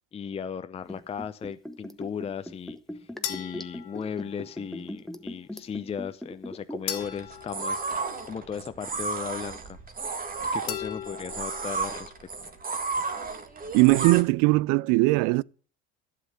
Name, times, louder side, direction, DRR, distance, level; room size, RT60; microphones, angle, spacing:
voice 1, 0.1-9.8 10.5-12.1, left 7 dB, 20° left, 0.6 m, -36 dB
Liquid, 0.9-7.0 7.3-7.4, left 1 dB, ahead, 1.0 m, -39 dB
sound 1, 3.2-4.7 6.9-8.7 10.7-11.8, left 11 dB, 70° left, 1.9 m, -38 dB
sound 2, 7.0-14.2, right 4 dB, 30° right, 1.6 m, -33 dB
voice 2, 13.7-15.4, right 23 dB, 65° right, 0.4 m, -20 dB
11.5 x 7.6 x 6.5 m
hypercardioid pair, 85°, 30 cm